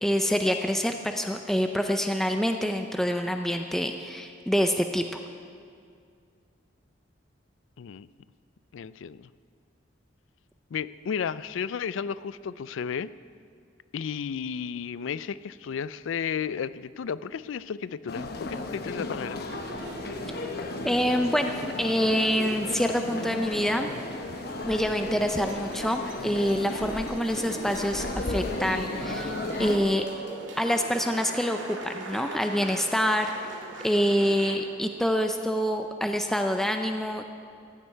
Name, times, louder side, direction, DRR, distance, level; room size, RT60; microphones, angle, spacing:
voice 1, 0.0-5.0 20.8-23.9 24.6-30.1 30.6-33.5 33.8-37.3, equal, ahead, 5 dB, 0.5 m, -26 dB
voice 2, 8.7-9.3 10.7-13.1 13.9-19.4, left 7 dB, 90° left, 17 dB, 0.4 m, -33 dB
sound 1, 18.1-29.8, left 2 dB, 55° left, 1.0 m, -34 dB
sound 2, 19.5-34.5, right 2 dB, 80° right, 2.1 m, -41 dB
14.5 x 7.8 x 9.5 m, 2.3 s
head